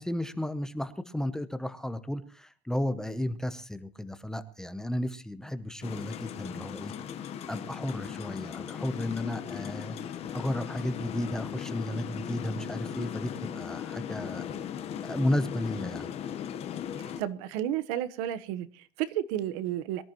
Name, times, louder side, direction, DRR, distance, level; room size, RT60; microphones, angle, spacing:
voice 1, 0.0-6.9 7.5-14.5 15.0-16.1, left 1 dB, 5° left, 0.8 m, -33 dB
sound 1, 5.8-17.2, left 9 dB, 35° left, 1.1 m, -38 dB
voice 2, 17.2-20.0, right 12 dB, 85° right, 1.2 m, -32 dB
23.5 x 13.5 x 3.0 m
cardioid pair, 170°, 18 cm